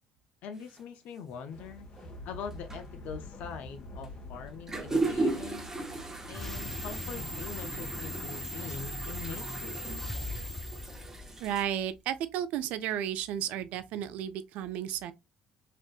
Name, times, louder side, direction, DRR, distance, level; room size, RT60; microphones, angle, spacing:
voice 1, 0.4-1.9 2.3-5.7 6.3-9.8, left 6 dB, 65° left, 0.5 m, -43 dB
sound 1, 0.6-0.8 2.0-2.1 2.5-2.9 4.0-4.1 4.5-11.6, right 2 dB, 20° right, 0.9 m, -36 dB
sound 2, 1.5-8.5, left 1 dB, 50° left, 1.3 m, -47 dB
sound 3, 6.3-11.7, equal, 10° left, 0.3 m, -38 dB
voice 2, 11.4-15.1, right 10 dB, 70° right, 0.3 m, -33 dB
3.3 x 2.6 x 2.3 m
hypercardioid pair, 70°, 3 cm